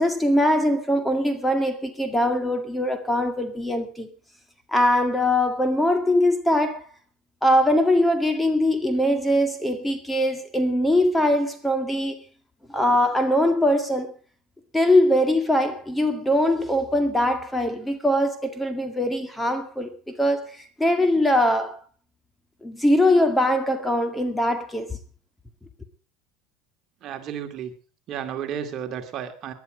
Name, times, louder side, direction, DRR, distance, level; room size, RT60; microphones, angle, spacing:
voice 1, 0.0-4.1 4.7-6.8 7.4-12.2 12.7-14.1 14.7-19.9 20.2-21.8 22.6-25.0, left 1 dB, 5° left, 2.0 m, -22 dB
voice 2, 27.0-27.7 28.1-29.5, right 8 dB, 45° right, 2.2 m, -32 dB
18.5 x 11.0 x 5.0 m
supercardioid pair, 125°, 0 cm